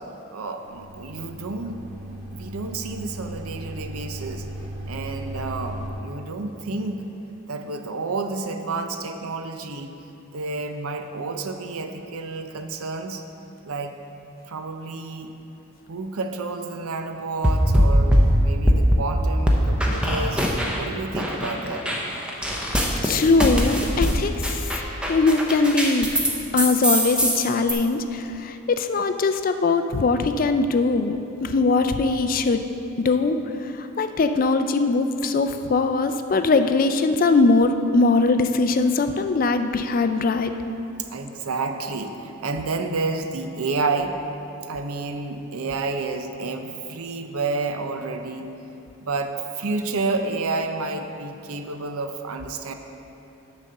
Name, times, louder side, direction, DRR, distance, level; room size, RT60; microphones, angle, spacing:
voice 1, 0.3-4.5 4.9-7.1 7.5-9.9 10.3-13.2 13.6-14.0 14.5-15.3 15.9-20.4 20.8-21.8 41.0-44.2 44.7-48.5 49.0-52.7, right 3 dB, 80° right, 6 dB, 0.6 m, -30 dB
sound 1, 0.6-5.9, right 1 dB, 35° right, 1.2 m, -36 dB
sound 2, 17.4-19.1 19.5-20.9 21.1-26.3 26.6-27.7, equal, 5° right, 0.7 m, -21 dB
voice 2, 22.8-24.3 25.1-26.1 26.5-32.6 33.0-33.4 34.0-40.5, left 3 dB, 40° left, 8 dB, 0.3 m, -21 dB
10.0 x 4.1 x 6.4 m, 2.9 s
head